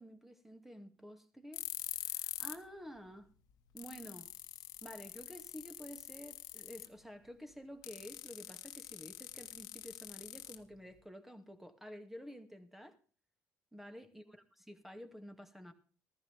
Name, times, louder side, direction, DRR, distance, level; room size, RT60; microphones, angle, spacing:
voice 1, 0.0-1.7 2.0-3.3 3.7-4.3 4.8-13.0 13.7-15.7, equal, 5° right, 2.4 m, -51 dB
sound 1, 1.5-2.7 3.0-3.1 3.5-3.6 3.8-7.0 7.8-11.0, left 13 dB, 70° left, 1.6 m, -45 dB
14.5 x 14.0 x 3.6 m
supercardioid pair, 70°, 7 cm